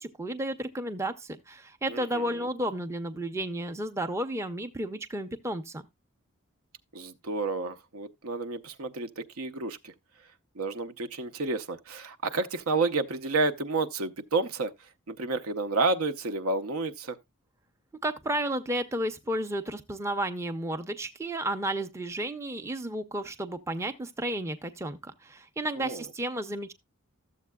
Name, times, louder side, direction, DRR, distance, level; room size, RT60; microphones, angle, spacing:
voice 1, 0.0-5.9 18.0-26.7, right 1 dB, 15° right, 0.5 m, -32 dB
voice 2, 1.9-2.5 6.9-9.9 10.6-14.7 15.1-17.2 25.8-26.0, right 3 dB, 80° right, 0.7 m, -30 dB
13.0 x 7.5 x 2.2 m
head